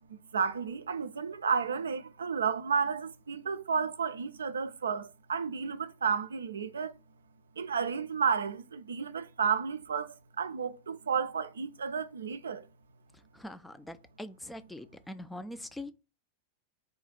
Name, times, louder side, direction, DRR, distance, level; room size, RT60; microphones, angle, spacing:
voice 1, 0.3-6.9 7.6-12.6, right 6 dB, 70° right, 0.3 m, -32 dB
voice 2, 13.3-15.9, left 1 dB, 5° left, 0.4 m, -43 dB
3.7 x 2.3 x 4.0 m
figure-of-eight pair, 90°, 0 cm